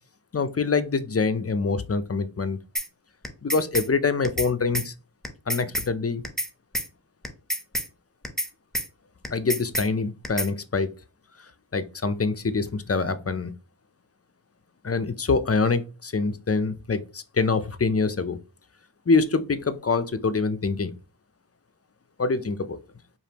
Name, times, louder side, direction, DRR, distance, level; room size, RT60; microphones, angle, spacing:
voice 1, 0.3-2.6 3.4-4.9 5.5-6.2 9.3-10.9 11.7-13.5 14.8-18.4 19.1-20.9 22.2-22.8, left 4 dB, 35° left, 0.5 m, -25 dB
sound 1, 2.8-2.9 3.2-3.9 4.2-4.5 4.7-4.9 5.2-5.9 6.2-6.5 6.7-6.9 7.2-7.9 8.2-8.5 8.7-8.9 9.2-9.9 10.2-10.5, equal, ahead, 0.9 m, -28 dB
5.1 x 2.5 x 2.9 m
wide cardioid pair, 40°, 46 cm